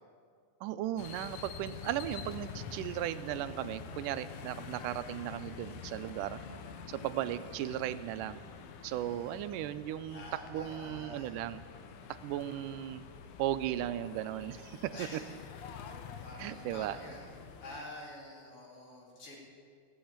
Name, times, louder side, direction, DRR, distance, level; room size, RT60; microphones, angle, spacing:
voice 1, 0.6-6.4 6.9-8.4 8.8-10.2 10.5-11.6 12.1-13.0 13.4-15.2 16.4-17.0, right 12 dB, 90° right, 13 dB, 2.2 m, -36 dB
sound 1, 1.0-17.8, left 7 dB, 75° left, 2.3 m, -47 dB
voice 2, 8.9-9.4 10.1-11.3 14.9-15.2 16.2-17.3 17.6-19.4, left 1 dB, 45° left, -3 dB, 3.6 m, -48 dB
15.5 x 8.2 x 8.7 m, 2.1 s
omnidirectional pair, 3.6 m